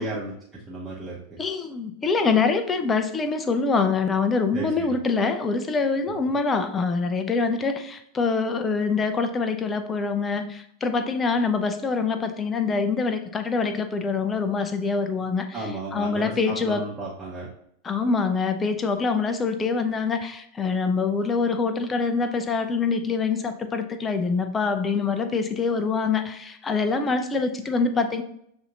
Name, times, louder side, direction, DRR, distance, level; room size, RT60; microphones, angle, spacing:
voice 1, 0.0-1.4 4.5-5.0 15.5-17.5, right 2 dB, 10° right, -7 dB, 0.9 m, -34 dB
voice 2, 1.4-15.5 15.9-16.8 17.8-28.2, left 4 dB, 20° left, 8 dB, 0.5 m, -25 dB
6.8 x 2.7 x 2.5 m, 0.72 s
figure-of-eight pair, 90°, 0 cm